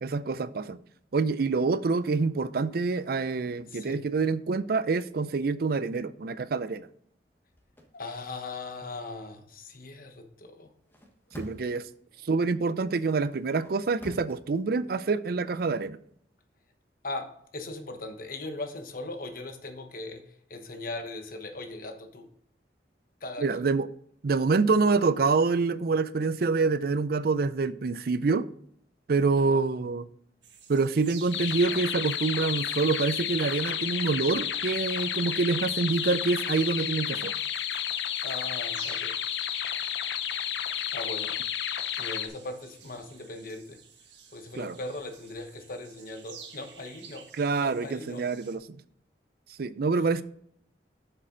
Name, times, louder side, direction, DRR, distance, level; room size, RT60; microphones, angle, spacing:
voice 1, 0.0-0.8 1.1-6.9 11.4-11.8 12.2-16.0 23.4-23.9 24.2-28.4 29.1-30.1 30.7-37.3 44.6-44.8 47.4-48.6 49.6-50.2, right 4 dB, 55° right, 15 dB, 0.5 m, -26 dB
voice 2, 3.6-4.0 7.9-10.7 17.0-22.3 23.2-23.4 29.5-29.6 38.2-39.2 40.9-41.4 42.0-43.8 44.3-47.3 47.6-48.2 49.9-50.0, left 2 dB, 55° left, 6 dB, 1.2 m, -39 dB
sound 1, 7.5-7.9 10.8-11.9 13.3-14.4, equal, 10° left, 1.2 m, -46 dB
sound 2, 30.4-48.6, right 6 dB, 85° right, 1.5 m, -52 dB
sound 3, 31.3-42.3, left 9 dB, 80° left, 0.7 m, -31 dB
7.5 x 6.7 x 3.8 m, 0.66 s
head